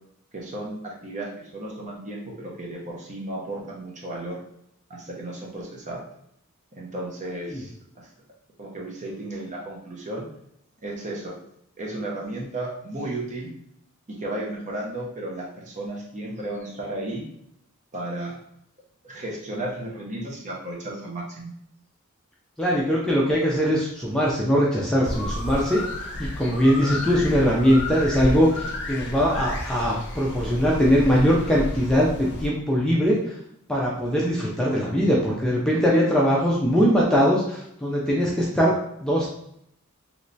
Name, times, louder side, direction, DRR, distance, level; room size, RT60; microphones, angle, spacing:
voice 1, 0.3-4.4 4.9-6.0 6.7-8.1 8.6-10.3 10.8-11.4 11.8-13.5 14.1-17.2 17.9-18.4 19.0-21.5 26.8-27.1, right 1 dB, 35° right, -2 dB, 0.7 m, -34 dB
voice 2, 22.6-25.8 26.2-33.3 33.7-39.3, equal, 5° left, -4 dB, 0.4 m, -21 dB
sound 1, 25.0-32.5, left 1 dB, 55° left, 0.6 m, -32 dB
3.2 x 3.0 x 2.6 m, 0.74 s
head